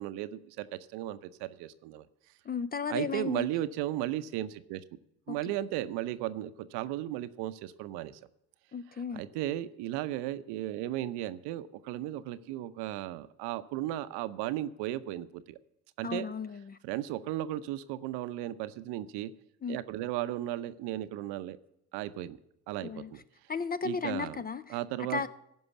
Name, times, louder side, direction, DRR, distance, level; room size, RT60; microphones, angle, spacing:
voice 1, 0.0-2.1 2.9-4.8 5.3-8.2 8.9-15.6 16.0-16.3 16.8-19.3 19.7-21.6 21.9-22.4 22.7-23.2 23.8-24.4 24.7-25.3, right 14 dB, 65° right, 0.7 m, -35 dB
voice 2, 2.5-3.5 5.3-5.4 8.7-9.2 16.0-16.8 19.6-19.8 22.8-23.1 23.5-24.8 25.1-25.3, left 5 dB, 20° left, 0.4 m, -34 dB
15.0 x 5.4 x 7.1 m
hypercardioid pair, 60°, 44 cm